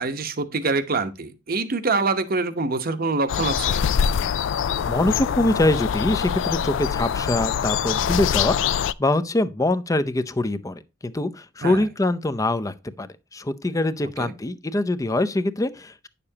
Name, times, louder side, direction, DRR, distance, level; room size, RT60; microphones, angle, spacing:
voice 1, 0.0-3.8 11.6-11.8 14.2-14.3, right 3 dB, 50° right, 0.9 m, -25 dB
sound 1, 3.3-8.9, left 8 dB, 75° left, 0.4 m, -24 dB
voice 2, 4.9-16.1, left 2 dB, 15° left, 0.5 m, -24 dB
9.7 x 6.8 x 2.8 m
head